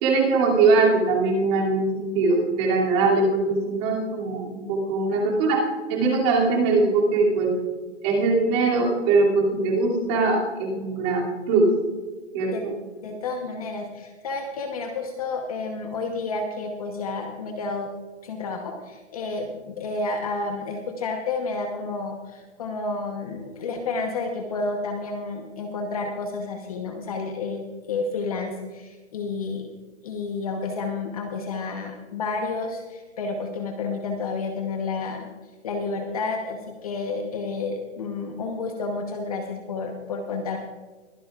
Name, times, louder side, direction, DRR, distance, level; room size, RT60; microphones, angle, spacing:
voice 1, 0.0-7.5 8.0-11.7 12.3-12.7, right 3 dB, 20° right, -3 dB, 2.7 m, -21 dB
voice 2, 13.0-17.9 18.2-29.7 30.0-35.3 35.6-40.6, left 3 dB, 30° left, 3 dB, 1.0 m, -30 dB
22.5 x 11.5 x 2.4 m, 1.4 s
hypercardioid pair, 170°, 37 cm